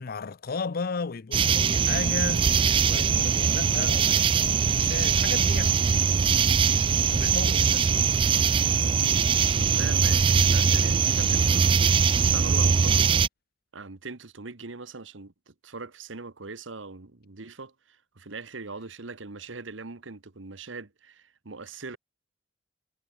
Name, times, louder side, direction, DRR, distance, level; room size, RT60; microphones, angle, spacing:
voice 1, 0.0-5.7 7.1-7.9, left 4 dB, 50° left, 0.6 m, -35 dB
sound 1, 1.3-13.3, right 6 dB, 25° right, 0.3 m, -22 dB
voice 2, 9.4-11.7 12.2-13.1 13.7-22.0, right 3 dB, 80° right, 1.4 m, -41 dB
head